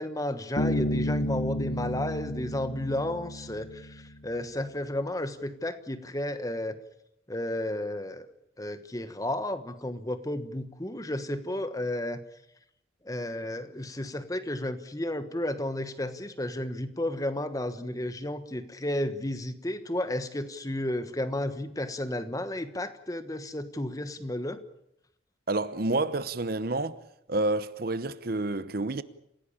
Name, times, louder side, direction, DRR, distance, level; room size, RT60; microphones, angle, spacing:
voice 1, 0.0-6.7 7.3-8.3 8.6-12.2 13.0-24.6, left 1 dB, 20° left, 1.3 m, -32 dB
Bass guitar, 0.6-4.1, equal, 45° left, 1.3 m, -31 dB
voice 2, 25.5-27.0 27.3-29.0, right 2 dB, 50° right, 0.9 m, -29 dB
28.0 x 16.5 x 8.7 m
head